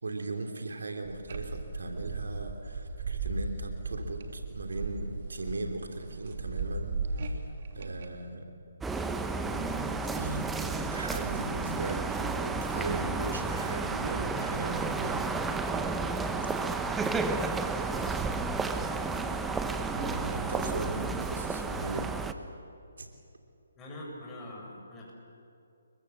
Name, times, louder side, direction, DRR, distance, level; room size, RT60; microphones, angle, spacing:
voice 1, 0.0-6.9 7.7-8.4 9.5-9.9 10.1-15.3 19.9-22.1 23.0-23.1, right 2 dB, 70° right, 5 dB, 3.1 m, -38 dB
sound 1, 1.0-8.1, right 3 dB, 45° right, 3.0 m, -36 dB
sound 2, 8.8-22.3, right 4 dB, 5° right, 1.1 m, -32 dB
voice 2, 13.7-14.2 17.9-18.1 23.8-25.1, left 1 dB, 15° left, -3 dB, 7.6 m, -45 dB
30.0 x 23.0 x 7.4 m, 2.6 s
figure-of-eight pair, 140°, 0 cm